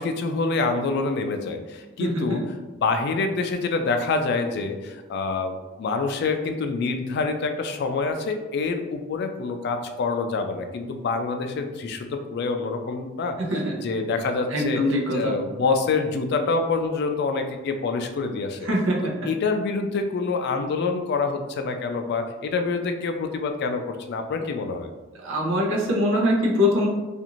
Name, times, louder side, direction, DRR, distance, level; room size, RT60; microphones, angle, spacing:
voice 1, 0.0-2.4 2.8-13.4 13.8-14.8 15.1-18.6 19.0-24.9, left 4 dB, 55° left, 6 dB, 0.3 m, -26 dB
voice 2, 2.0-2.4 13.5-13.7 14.5-15.3 18.6-19.0 25.2-26.9, left 1 dB, 80° right, -1 dB, 0.7 m, -23 dB
2.5 x 2.4 x 2.9 m, 1.2 s
head